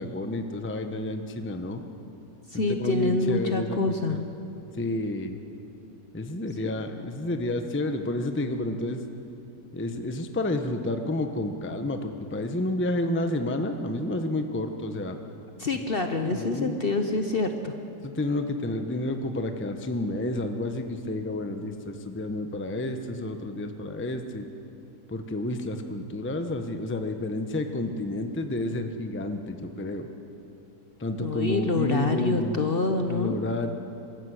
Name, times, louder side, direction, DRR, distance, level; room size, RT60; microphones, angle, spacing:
voice 1, 0.0-1.8 2.5-4.2 4.7-5.4 6.1-9.0 9.7-15.2 16.0-16.8 18.0-24.5 25.1-30.1 31.0-32.6 33.1-33.7, left 1 dB, 10° left, 6 dB, 0.7 m, -30 dB
voice 2, 2.5-4.2 15.6-17.7 31.2-33.3, left 3 dB, 40° left, 6 dB, 0.9 m, -26 dB
24.0 x 13.5 x 8.1 m, 2.9 s
omnidirectional pair, 1.7 m